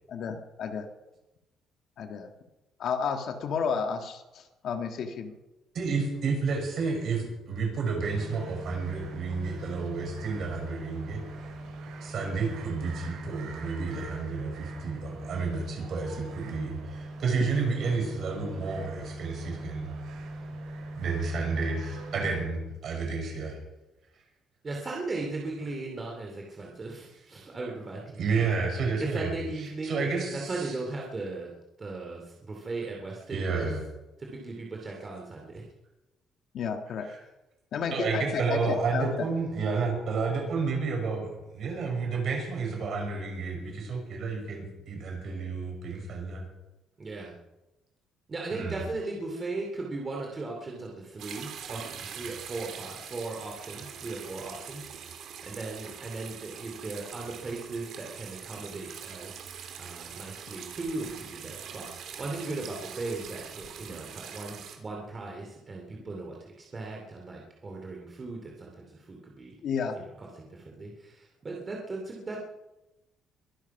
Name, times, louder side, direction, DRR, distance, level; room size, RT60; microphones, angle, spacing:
voice 1, 0.1-0.9 2.0-2.3 2.8-5.3 36.5-37.1 37.7-39.1 69.6-70.0, left 6 dB, 55° left, 5 dB, 1.7 m, -31 dB
voice 2, 5.7-11.2 12.0-19.9 21.0-23.6 28.2-29.3 29.8-30.5 33.3-33.8 37.0-37.2 37.9-46.4 48.5-48.8 59.6-59.7, right 4 dB, 50° right, 1 dB, 6.2 m, -31 dB
sound 1, 8.0-22.4, right 2 dB, 85° right, 5.1 m, -41 dB
voice 3, 24.6-28.3 29.0-31.5 31.8-33.7 34.2-35.6 47.0-47.3 48.3-69.5 69.9-72.4, right 3 dB, 25° right, 0 dB, 2.6 m, -38 dB
sound 2, 51.2-64.8, right 8 dB, 65° right, 3.1 m, -43 dB
22.5 x 10.5 x 6.0 m, 1.0 s
cardioid pair, 165°, 0 cm